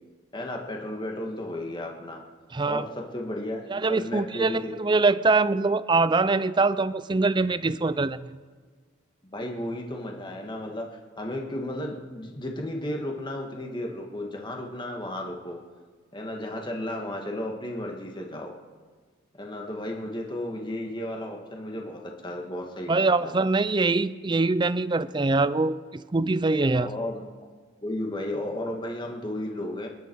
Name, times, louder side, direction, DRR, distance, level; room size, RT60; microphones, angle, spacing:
voice 1, 0.3-2.2 2.6-4.7 9.3-15.6 16.1-18.5 19.3-23.4 26.6-27.5 27.8-29.9, left 1 dB, 20° left, 1 dB, 1.8 m, -34 dB
voice 2, 2.5-2.8 3.7-8.4 22.9-26.9, right 3 dB, 20° right, 16 dB, 0.4 m, -23 dB
27.5 x 10.5 x 4.7 m, 1.5 s
head